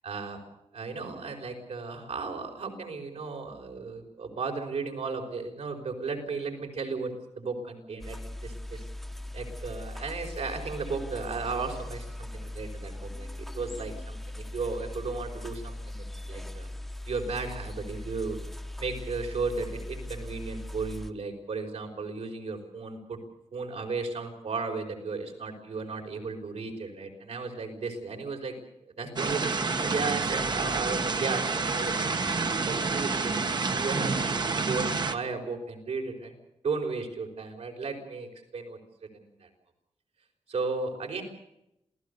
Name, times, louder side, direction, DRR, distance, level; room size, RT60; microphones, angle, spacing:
voice 1, 0.0-0.4 0.7-8.8 9.3-16.7 17.1-18.4 18.8-23.2 23.5-28.5 28.9-33.3 33.7-36.3 36.6-38.3 38.5-39.5 40.5-41.2, right 4 dB, 75° right, 3 dB, 5.2 m, -35 dB
sound 1, 8.0-21.1, left 1 dB, ahead, 1.3 m, -39 dB
sound 2, 29.2-35.1, right 4 dB, 40° right, 1.4 m, -28 dB
28.0 x 17.5 x 6.9 m, 0.82 s
wide cardioid pair, 135°, 11 cm